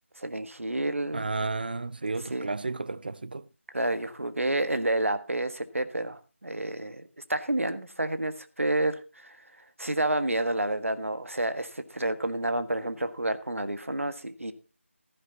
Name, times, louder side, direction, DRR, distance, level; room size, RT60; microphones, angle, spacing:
voice 1, 0.2-1.2 2.3-2.5 3.7-9.4 9.8-14.5, right 1 dB, 75° right, 1.5 m, -29 dB
voice 2, 1.1-3.5, right 3 dB, 45° right, 0.6 m, -32 dB
14.5 x 10.0 x 4.0 m
figure-of-eight pair, 165°, 7 cm